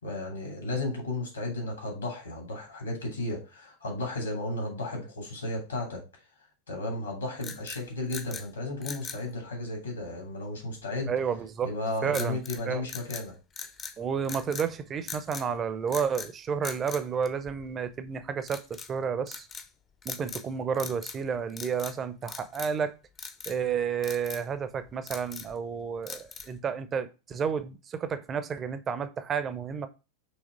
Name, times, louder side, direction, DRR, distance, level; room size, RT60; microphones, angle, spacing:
voice 1, 0.0-6.0 6.7-11.1 11.6-13.3, left 2 dB, 70° left, 2.8 m, -34 dB
sound 1, 7.4-8.5 8.8-9.2 12.1-12.6 12.9-14.0 14.2-14.7 15.1-15.5 15.9-16.3 16.6-17.8 18.4-18.9 19.3-19.7 20.0-20.5 20.7-21.2 21.5-22.0 22.3-22.8 23.2-23.6 24.0-24.4 24.9-25.6 26.1-26.6, left 5 dB, 25° left, 0.7 m, -41 dB
voice 2, 11.1-11.7 12.0-12.4 12.7-12.8 14.0-19.5 20.0-22.9 23.5-29.9, right 6 dB, 25° right, 0.7 m, -31 dB
6.4 x 3.1 x 5.0 m
figure-of-eight pair, 90°, 0 cm